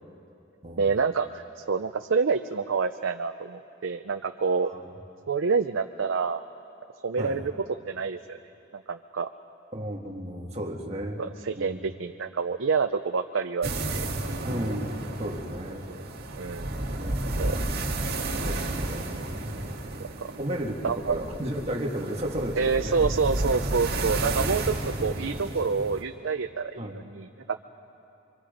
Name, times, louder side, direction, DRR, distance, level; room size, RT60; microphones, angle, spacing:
voice 1, 0.8-4.7 5.3-6.4 7.0-7.5 7.9-8.4 8.9-9.3 11.2-14.1 15.9-16.0 16.4-16.7 17.4-17.6 20.0-20.3 20.8-21.2 22.6-27.6, right 5 dB, 75° right, 7 dB, 0.6 m, -27 dB
voice 2, 9.7-11.2 11.6-11.8 14.4-15.9 17.0-17.4 18.5-19.1 19.4-19.5 20.4-23.0 24.2-24.6 26.8-27.0, equal, 30° right, 0 dB, 1.9 m, -34 dB
sound 1, 13.6-26.0, right 2 dB, 50° right, 2.3 m, -32 dB
27.5 x 24.0 x 5.1 m, 2.7 s
head